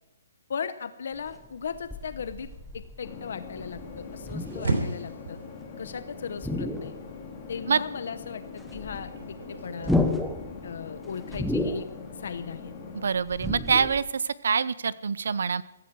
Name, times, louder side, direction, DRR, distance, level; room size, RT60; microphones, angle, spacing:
voice 1, 0.5-5.4 5.8-6.9 7.5-10.0 10.6-11.9 12.1-12.7, left 6 dB, 60° left, 12 dB, 0.8 m, -37 dB
sound 1, 1.2-6.0 6.3-7.6 7.9-8.0 8.2-14.0, left 2 dB, ahead, 0.8 m, -32 dB
sound 2, 2.4-9.9, right 3 dB, 85° right, 3.4 m, -37 dB
sound 3, 3.0-13.1, left 4 dB, 20° left, 2.5 m, -43 dB
voice 2, 12.9-15.6, right 6 dB, 70° right, 19 dB, 0.7 m, -25 dB
16.0 x 15.0 x 4.7 m, 0.93 s
hypercardioid pair, 170°, 0 cm